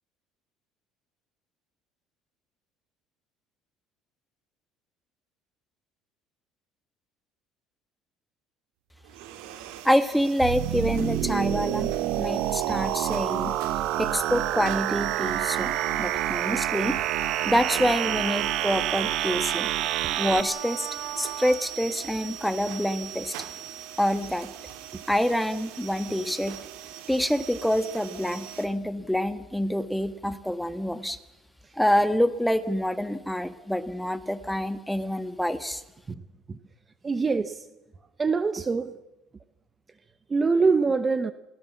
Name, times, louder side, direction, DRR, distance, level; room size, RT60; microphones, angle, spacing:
sound 1, 9.0-28.7, right 11 dB, 85° right, 2.2 m, -41 dB
voice 1, 9.8-13.6 14.0-17.0 17.4-19.7 20.2-20.9 21.2-23.3 24.0-24.5 25.1-26.6 27.1-31.2 31.8-35.8, equal, ahead, 11 dB, 1.5 m, -26 dB
sound 2, 10.4-20.4, right 13 dB, 70° right, 1.2 m, -28 dB
Wind instrument woodwind instrument, 15.2-21.6, right 8 dB, 50° right, 4.6 m, -38 dB
voice 2, 37.0-37.6 38.2-38.9 40.3-41.3, right 4 dB, 20° right, 12 dB, 1.0 m, -24 dB
28.5 x 18.0 x 7.2 m, 1.1 s
cardioid pair, 125°, 0 cm